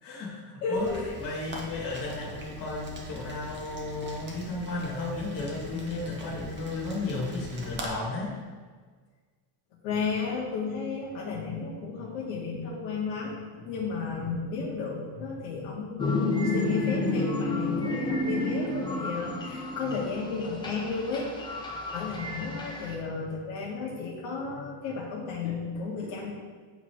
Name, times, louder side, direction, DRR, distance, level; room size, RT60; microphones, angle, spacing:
voice 1, 0.0-0.9 1.2-8.4, left 2 dB, 40° left, -3 dB, 2.0 m, -34 dB
voice 2, 0.6-1.1 9.8-26.3, left 4 dB, 75° left, -5 dB, 1.3 m, -33 dB
Rain, 0.7-7.9, equal, 20° right, 0.9 m, -42 dB
sound 1, 16.0-22.9, left 2 dB, 10° left, 0.6 m, -30 dB
8.1 x 3.1 x 4.6 m, 1.5 s
cardioid pair, 145°, 49 cm